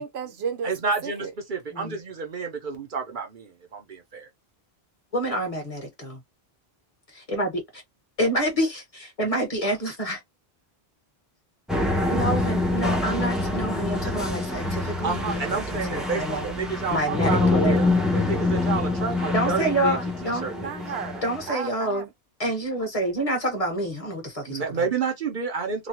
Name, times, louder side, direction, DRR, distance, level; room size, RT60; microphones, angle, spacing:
voice 1, 0.0-0.7 1.0-1.3 20.5-22.1, right 6 dB, 85° right, 1.0 m, -33 dB
voice 2, 0.6-4.3 15.0-17.9 18.1-20.7 24.5-25.9, right 5 dB, 55° right, 0.9 m, -30 dB
voice 3, 5.1-6.2 7.3-7.8 8.2-10.2 12.1-17.8 19.3-20.5 21.2-22.1 22.4-24.9, right 1 dB, 35° left, 1.4 m, -28 dB
sound 1, 11.7-21.5, left 2 dB, ahead, 0.8 m, -26 dB
3.0 x 2.3 x 2.8 m
omnidirectional pair, 1.0 m